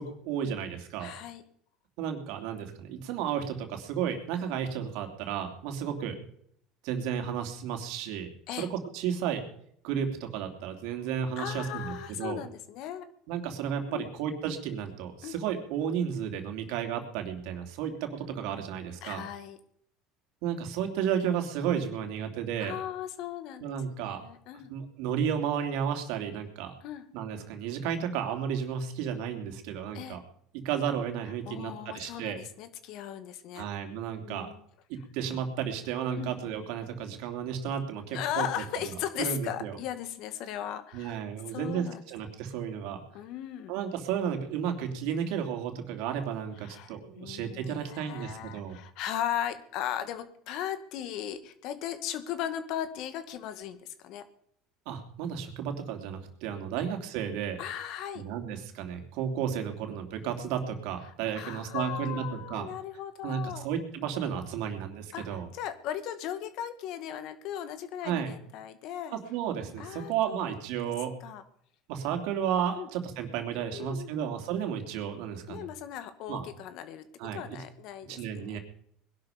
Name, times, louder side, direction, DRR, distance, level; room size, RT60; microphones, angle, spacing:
voice 1, 0.0-1.1 2.0-6.2 6.8-8.3 8.6-9.4 9.8-12.4 13.3-19.2 20.4-22.7 23.6-24.2 24.7-26.7 27.1-30.2 30.5-32.4 33.5-34.5 34.9-38.5 39.2-39.8 40.9-43.0 43.7-48.8 54.8-57.6 58.1-62.7 63.2-65.5 68.0-68.3 69.1-71.1 71.9-75.7 76.3-76.4 77.2-77.4 78.1-78.6, right 8 dB, 70° right, 5 dB, 3.1 m, -33 dB
voice 2, 1.0-1.4 8.5-8.7 11.4-13.1 13.9-14.1 15.2-15.4 19.0-19.6 22.6-23.8 24.0-24.7 26.8-27.0 29.9-30.2 31.5-33.7 34.2-34.6 36.2-36.3 38.1-42.0 43.1-43.7 46.6-54.3 57.6-58.2 61.1-63.7 65.1-69.2 69.8-70.6 70.8-70.9 71.2-71.4 72.8-72.9 73.6-74.3 75.5-78.6, left 10 dB, 65° left, 10 dB, 2.0 m, -37 dB
21.0 x 11.5 x 5.3 m, 0.68 s
supercardioid pair, 95°, 0 cm